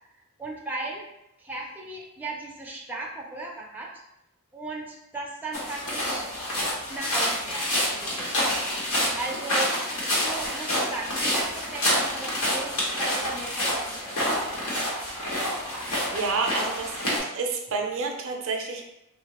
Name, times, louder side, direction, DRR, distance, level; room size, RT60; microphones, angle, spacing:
voice 1, 0.4-1.0 1.4-3.9 4.5-6.2 6.9-8.6 9.2-9.7 10.2-14.7, right 2 dB, 10° right, -2 dB, 0.4 m, -36 dB
sound 1, 5.5-17.2, equal, 70° left, 1.1 m, -28 dB
voice 2, 16.1-18.8, right 4 dB, 60° right, 2 dB, 0.5 m, -29 dB
3.5 x 2.1 x 2.9 m, 0.86 s
head